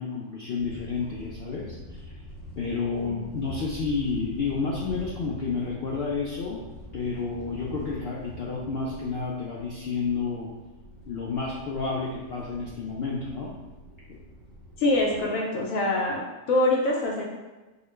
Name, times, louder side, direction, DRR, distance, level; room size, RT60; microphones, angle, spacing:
voice 1, 0.0-2.1 2.6-6.6 6.9-10.5 11.1-13.6 14.1-14.2, left 4 dB, 90° left, -4 dB, 0.5 m, -30 dB
sound 1, 0.6-15.2, left 1 dB, ahead, 0.4 m, -44 dB
voice 2, 14.8-16.2 16.5-17.2, left 2 dB, 70° left, -2 dB, 0.9 m, -24 dB
4.2 x 2.2 x 3.2 m, 1.2 s
omnidirectional pair, 1.6 m